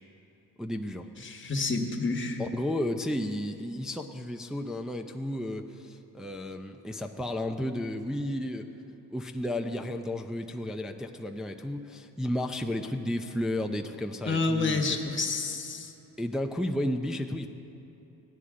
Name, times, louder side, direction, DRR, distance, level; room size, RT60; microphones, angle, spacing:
voice 1, 0.6-1.1 2.4-8.7 9.1-15.0 16.2-17.5, left 1 dB, ahead, 4 dB, 0.5 m, -33 dB
voice 2, 1.2-2.4 14.2-15.9, left 3 dB, 30° left, 4 dB, 1.3 m, -29 dB
16.5 x 11.0 x 3.7 m, 2.9 s
cardioid pair, 70°, 38 cm